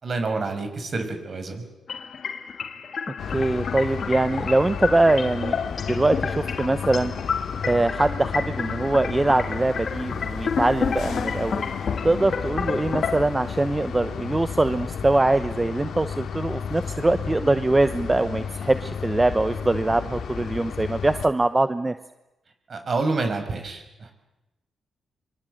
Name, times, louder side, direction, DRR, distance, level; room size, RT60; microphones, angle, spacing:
voice 1, 0.0-1.6 22.7-24.1, right 3 dB, 50° right, 6 dB, 5.9 m, -28 dB
sound 1, 1.9-13.2, left 6 dB, 60° left, 1.7 m, -31 dB
sound 2, 3.2-21.3, left 6 dB, 75° left, 2.2 m, -33 dB
voice 2, 3.3-5.6 5.9-7.1 7.7-11.6 12.0-21.9, right 2 dB, 20° right, 11 dB, 0.9 m, -22 dB
25.5 x 24.5 x 7.9 m, 1.0 s
cardioid pair, 80°, 0 cm